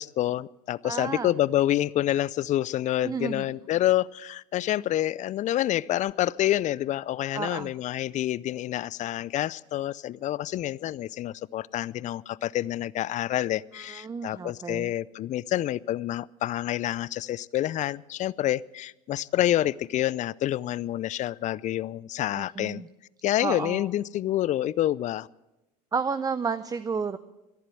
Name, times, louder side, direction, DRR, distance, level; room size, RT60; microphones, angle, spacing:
voice 1, 0.0-22.8 23.2-25.3, left 13 dB, 35° left, 22 dB, 0.4 m, -28 dB
voice 2, 0.8-1.3 3.0-3.5 7.3-7.7 13.7-14.9 22.3-22.9 23.4-23.9 25.9-27.2, right 5 dB, 20° right, 14 dB, 0.5 m, -31 dB
14.0 x 11.0 x 7.7 m, 0.96 s
hypercardioid pair, 80°, 21 cm